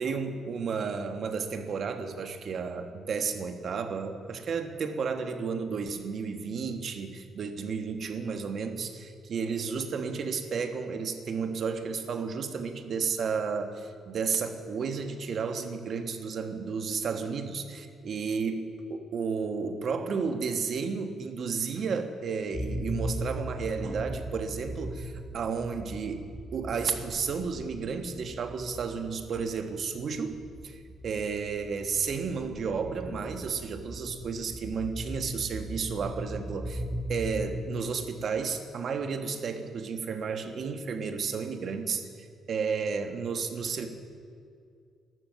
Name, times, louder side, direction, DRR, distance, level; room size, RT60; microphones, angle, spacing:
voice 1, 0.0-36.8 37.1-43.9, right 5 dB, 60° right, 7 dB, 1.4 m, -32 dB
sound 1, 22.5-38.2, equal, 25° left, 1.5 m, -38 dB
12.5 x 12.5 x 8.0 m, 2.3 s
cardioid pair, 90°, 0 cm